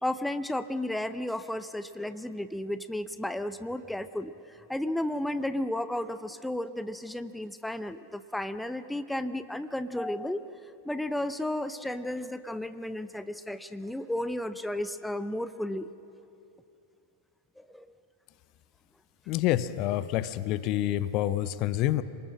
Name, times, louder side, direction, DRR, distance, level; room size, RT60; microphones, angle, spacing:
voice 1, 0.0-4.3 4.7-10.4 10.8-15.9 17.6-17.9, left 1 dB, 5° left, 12 dB, 0.6 m, -33 dB
voice 2, 19.3-22.0, left 13 dB, 40° left, 16 dB, 0.7 m, -27 dB
27.5 x 20.0 x 6.3 m, 2.7 s
figure-of-eight pair, 90°, 0 cm